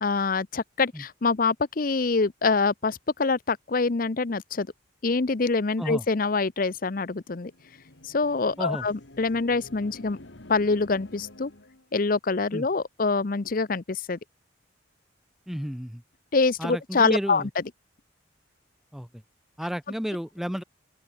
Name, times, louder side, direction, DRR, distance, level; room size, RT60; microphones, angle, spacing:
voice 1, 0.0-4.7 5.0-7.5 8.1-10.2 10.5-11.5 11.9-14.2 16.3-17.4, left 4 dB, 45° left, 0.6 m, -25 dB
sound 1, 7.3-11.9, left 1 dB, 65° left, 2.0 m, -48 dB
voice 2, 15.5-16.0 16.6-17.5 18.9-19.1 19.6-20.6, equal, ahead, 0.4 m, -31 dB
open air
head